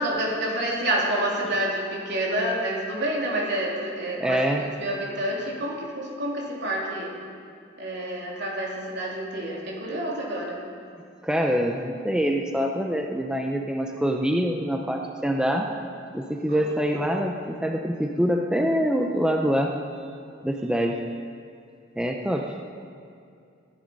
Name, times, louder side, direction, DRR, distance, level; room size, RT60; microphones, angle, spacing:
voice 1, 0.0-7.1 7.8-10.6 16.5-16.6, right 1 dB, 65° right, -3 dB, 3.5 m, -28 dB
voice 2, 4.2-4.6 11.2-15.7 16.1-19.7 20.4-21.0 22.0-22.6, equal, 5° right, 2 dB, 0.7 m, -25 dB
21.0 x 10.5 x 5.4 m, 2.4 s
head